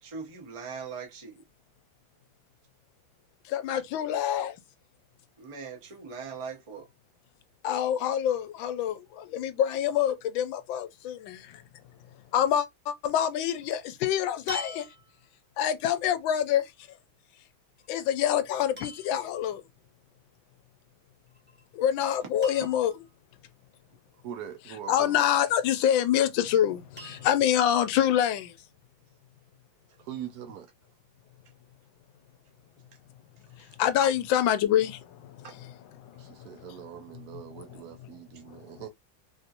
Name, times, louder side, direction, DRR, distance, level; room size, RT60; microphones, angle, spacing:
voice 1, 0.0-1.4 5.4-6.9 22.2-22.3 33.6-33.8 35.4-35.5, right 5 dB, 55° right, 0.3 m, -40 dB
voice 2, 3.5-4.5 7.6-11.2 12.3-14.9 15.6-16.6 17.9-19.6 21.7-22.9 24.9-28.5 33.8-35.0, left 10 dB, 75° left, 1.3 m, -26 dB
sound 1, 13.6-13.8 14.5-15.4 17.8-18.1 18.8-19.3 21.3-21.6 21.9-22.0 22.4-23.1 25.4-26.0 27.0-27.6 28.3-28.4, equal, 10° right, 0.8 m, -44 dB
voice 3, 24.2-25.3 30.0-30.7 36.2-38.9, right 10 dB, 75° right, 0.9 m, -42 dB
3.5 x 2.7 x 2.5 m
omnidirectional pair, 2.2 m